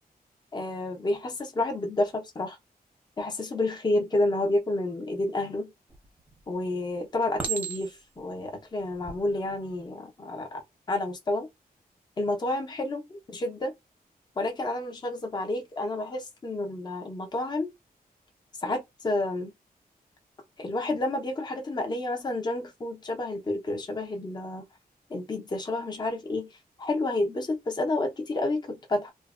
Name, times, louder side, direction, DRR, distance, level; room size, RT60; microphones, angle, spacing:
voice 1, 0.5-2.6 3.2-5.7 6.5-10.6 10.9-11.5 12.2-13.1 13.3-13.7 14.4-17.7 18.6-19.5 20.6-24.6 25.1-26.5 26.8-29.1, left 2 dB, 25° left, 0.6 m, -30 dB
Chink clink, 5.9-6.4 7.4-8.2 8.9-9.2, right 6 dB, 10° right, 0.7 m, -34 dB
3.0 x 2.1 x 2.3 m
wide cardioid pair, 170°, 16 cm